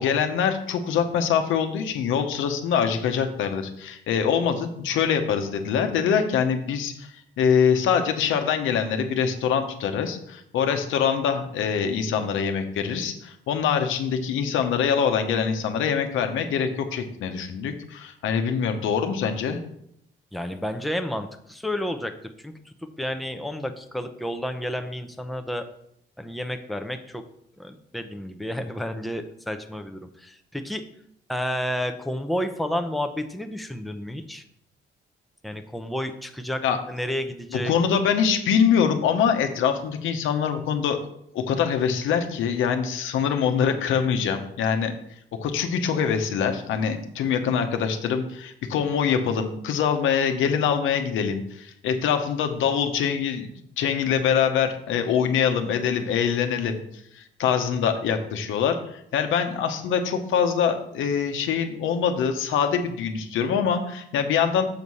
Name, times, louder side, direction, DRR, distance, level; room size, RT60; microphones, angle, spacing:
voice 1, 0.0-7.1 7.4-19.6 36.6-36.8 37.5-41.0 41.3-44.9 45.4-56.8 57.1-64.7, left 7 dB, 85° left, 6 dB, 1.0 m, -24 dB
voice 2, 20.3-22.1 22.4-22.5 23.0-25.7 26.2-27.2 27.6-30.8 31.3-34.4 35.4-37.7, equal, ahead, 6 dB, 0.7 m, -31 dB
7.0 x 4.7 x 5.5 m, 0.73 s
cardioid pair, 90°, 20 cm